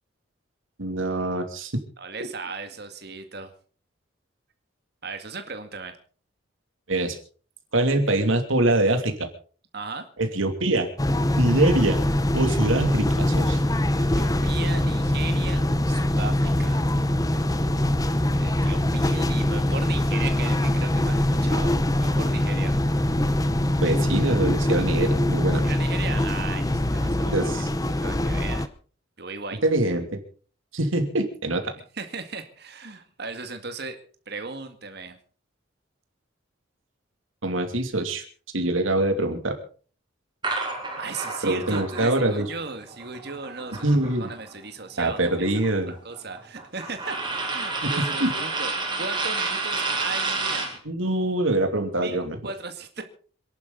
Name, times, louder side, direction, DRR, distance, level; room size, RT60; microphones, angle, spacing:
voice 1, 0.8-1.8 6.9-7.2 7.7-9.3 10.2-10.9 11.4-12.0 12.3-13.6 23.8-25.7 27.3-27.7 29.6-30.2 30.7-31.7 37.4-38.2 38.5-39.6 41.4-42.5 43.8-44.3 45.0-45.9 47.8-48.3 50.8-52.4, right 2 dB, 85° right, 6 dB, 2.8 m, -24 dB
voice 2, 2.0-3.5 5.0-6.0 9.7-10.1 14.0-16.8 18.4-22.7 25.6-28.7 29.2-29.6 31.9-34.0 34.3-35.2 40.9-45.5 46.0-50.7 52.0-53.0, right 4 dB, 55° right, 7 dB, 2.1 m, -37 dB
sound 1, 11.0-28.7, left 1 dB, 20° left, 0.9 m, -23 dB
sound 2, 40.4-44.5 44.8-50.8, right 3 dB, 25° right, 3.7 m, -30 dB
27.0 x 11.5 x 4.0 m, 0.41 s
head